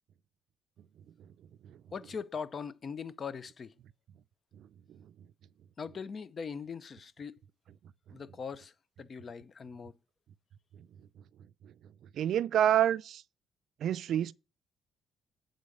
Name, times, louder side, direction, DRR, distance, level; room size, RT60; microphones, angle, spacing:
voice 1, 1.9-3.7 5.8-7.4 8.1-8.7 9.0-10.0, left 6 dB, 45° left, 0.6 m, -41 dB
voice 2, 12.1-13.2 13.8-14.3, right 10 dB, 70° right, 0.3 m, -28 dB
8.4 x 3.8 x 6.5 m
cardioid pair, 90°, 0 cm